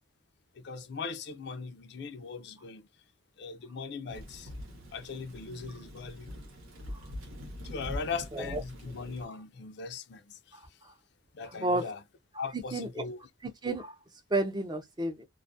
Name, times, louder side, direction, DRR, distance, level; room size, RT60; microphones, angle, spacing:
voice 1, 0.6-2.9 3.4-4.5 4.9-6.3 7.6-10.6 11.3-12.0 12.4-13.2, left 5 dB, 55° left, 0.4 m, -39 dB
Thunder / Rain, 4.1-9.3, left 1 dB, 90° right, 0.9 m, -43 dB
voice 2, 10.5-10.9 11.4-11.9 12.3-13.0 13.4-14.0 14.3-15.2, right 2 dB, 20° right, 0.4 m, -33 dB
2.3 x 2.1 x 2.6 m
head